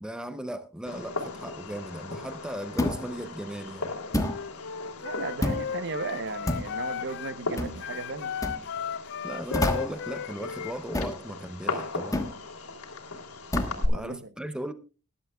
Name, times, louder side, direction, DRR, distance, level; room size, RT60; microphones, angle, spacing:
voice 1, 0.0-3.9 9.2-12.3 13.9-14.7, right 1 dB, 5° right, 0.6 m, -37 dB
Fireworks, 0.9-13.9, left 3 dB, 75° left, 3.2 m, -37 dB
sound 1, 2.8-3.1 4.1-4.4 5.4-5.7 6.5-6.7 7.6-7.8 8.4-8.6 9.5-10.0 10.9-11.2 12.1-12.4 13.5-13.8, left 1 dB, 15° left, 1.3 m, -28 dB
Wind instrument woodwind instrument, 4.1-7.4 7.7-11.2, left 7 dB, 55° left, 0.5 m, -35 dB
voice 2, 5.0-8.4 13.6-14.3, right 4 dB, 55° right, 0.9 m, -36 dB
20.0 x 11.5 x 2.3 m
head